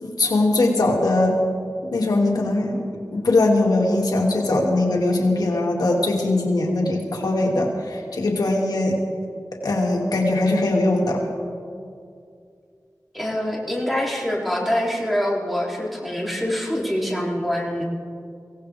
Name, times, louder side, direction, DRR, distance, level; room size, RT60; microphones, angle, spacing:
voice 1, 0.0-1.4 1.9-2.8 3.1-9.0 9.6-11.3, left 2 dB, 80° left, -1 dB, 2.2 m, -21 dB
voice 2, 13.1-17.9, equal, ahead, -4 dB, 3.1 m, -25 dB
24.0 x 17.0 x 3.4 m, 2.4 s
wide cardioid pair, 70°, 7 cm